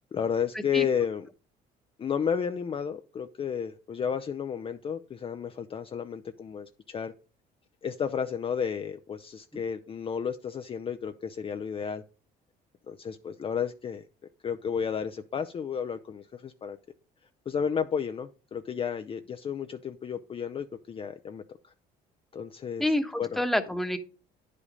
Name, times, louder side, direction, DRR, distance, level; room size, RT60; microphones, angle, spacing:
voice 1, 0.1-1.3 2.0-7.1 7.8-12.0 12.9-14.1 14.4-16.8 17.5-21.7 22.3-22.9 23.2-23.4, left 7 dB, 35° left, 8 dB, 0.5 m, -32 dB
voice 2, 22.8-24.0, left 1 dB, ahead, 6 dB, 1.1 m, -27 dB
9.8 x 5.1 x 5.3 m, 0.36 s
cardioid pair, 110°, 17 cm